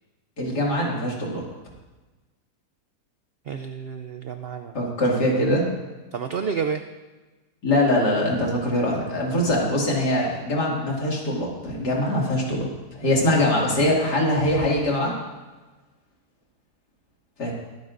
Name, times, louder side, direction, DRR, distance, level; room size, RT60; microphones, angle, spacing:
voice 1, 0.4-1.4 4.7-5.7 7.6-15.1 17.4-17.5, left 1 dB, 85° left, -3 dB, 2.9 m, -23 dB
voice 2, 3.5-4.9 5.3-5.4 6.1-6.8, right 6 dB, 85° right, 7 dB, 0.5 m, -30 dB
22.0 x 9.5 x 2.6 m, 1.2 s
omnidirectional pair, 1.7 m